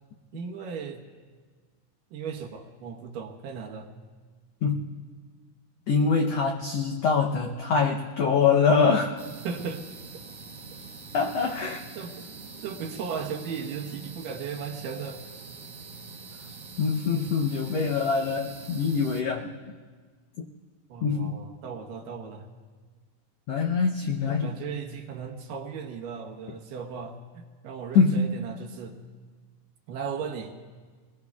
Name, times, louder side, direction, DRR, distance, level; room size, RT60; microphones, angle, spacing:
voice 1, 0.3-1.1 2.1-3.9 9.4-9.9 12.0-12.2 12.6-15.2 20.9-22.5 24.3-29.0 29.9-30.5, right 6 dB, 80° right, 2 dB, 2.8 m, -36 dB
voice 2, 5.9-9.2 11.1-11.8 16.8-19.5 20.4-20.5 21.0-21.4 23.5-24.5 27.9-28.3, left 5 dB, 75° left, 1 dB, 1.5 m, -24 dB
sound 1, 9.2-19.2, right 4 dB, 60° right, 1.7 m, -44 dB
26.5 x 22.0 x 2.4 m, 1.5 s
omnidirectional pair, 3.9 m